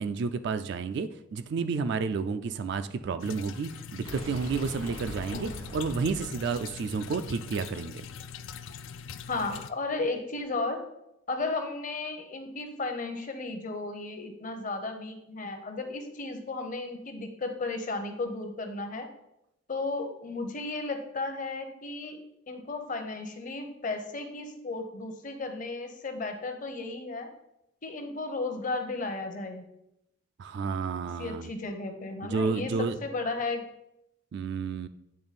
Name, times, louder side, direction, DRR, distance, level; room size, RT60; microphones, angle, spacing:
voice 1, 0.0-8.0 30.4-31.5 32.2-33.0 34.3-34.9, right 4 dB, 55° right, 10 dB, 0.3 m, -31 dB
sound 1, 3.2-9.7, left 6 dB, 65° left, 0.4 m, -43 dB
sound 2, 4.0-8.0, right 1 dB, 85° right, 1.4 m, -43 dB
voice 2, 9.3-10.8 11.3-19.1 19.7-22.2 22.5-27.3 27.8-29.7 31.2-33.6, left 3 dB, 40° left, 6 dB, 0.7 m, -34 dB
8.7 x 3.4 x 4.1 m, 0.83 s
head